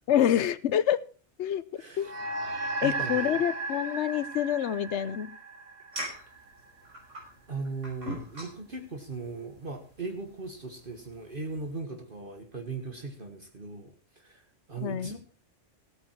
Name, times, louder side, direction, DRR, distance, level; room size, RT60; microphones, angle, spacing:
voice 1, 0.1-1.0 1.4-1.6 2.0-2.1 2.8-5.3 14.8-15.2, left 10 dB, 70° left, 16 dB, 1.0 m, -27 dB
voice 2, 1.8-2.1 2.8-3.4 7.5-15.2, right 3 dB, 45° right, 4 dB, 1.7 m, -38 dB
sound 1, 2.0-6.7, right 3 dB, 60° right, 1.6 m, -35 dB
sound 2, 5.9-11.8, right 1 dB, 80° right, 5.8 m, -44 dB
16.5 x 9.0 x 4.6 m, 0.40 s
omnidirectional pair, 1.2 m